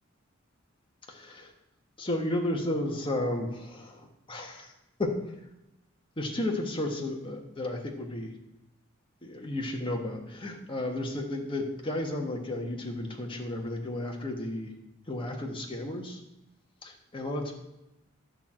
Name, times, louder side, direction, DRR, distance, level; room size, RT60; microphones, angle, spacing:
voice 1, 1.1-1.5 2.0-4.7 5.0-5.1 6.2-8.4 9.2-14.7 15.1-16.2 16.8-17.5, left 1 dB, 25° left, 1 dB, 1.3 m, -33 dB
10.5 x 4.5 x 7.5 m, 0.89 s
head